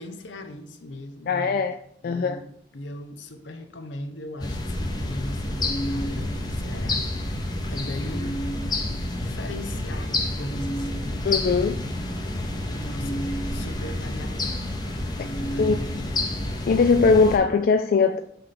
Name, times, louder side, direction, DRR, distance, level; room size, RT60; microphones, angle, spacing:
voice 1, 0.0-1.7 2.0-2.5 2.7-7.4 7.7-8.5 8.9-11.2 11.5-11.8 12.6-14.8 15.3-16.4, left 1 dB, 75° left, 8 dB, 0.8 m, -38 dB
voice 2, 1.3-1.8 2.0-2.4 11.3-11.8 15.6-15.8 16.7-18.2, left 4 dB, 50° left, 8 dB, 0.3 m, -20 dB
sound 1, 4.4-17.4, left 1 dB, 20° left, 0.8 m, -29 dB
5.7 x 3.4 x 5.8 m, 0.68 s
head